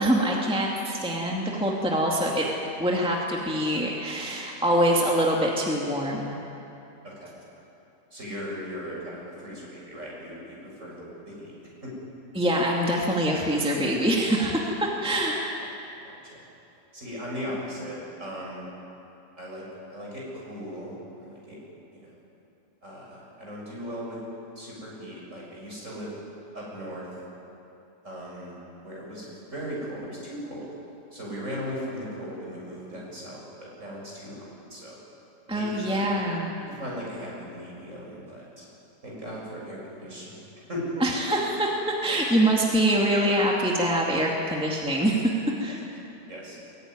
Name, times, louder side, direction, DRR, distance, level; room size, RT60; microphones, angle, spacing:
voice 1, 0.0-2.5 2.8-6.3 12.3-15.4 35.5-36.6 41.0-45.2 45.6-45.8, right 1 dB, 5° right, -2 dB, 2.2 m, -24 dB
voice 2, 8.1-11.5 11.8-11.9 16.0-16.4 16.9-18.6 19.4-19.6 19.9-21.6 21.9-22.1 22.8-24.2 24.6-26.1 26.5-27.2 28.0-28.5 28.8-30.7 31.1-35.0 35.5-36.0 36.6-38.7 39.0-41.0 46.3-46.6, equal, 45° right, -4 dB, 7.5 m, -38 dB
22.5 x 19.5 x 9.9 m, 2.9 s
omnidirectional pair, 1.8 m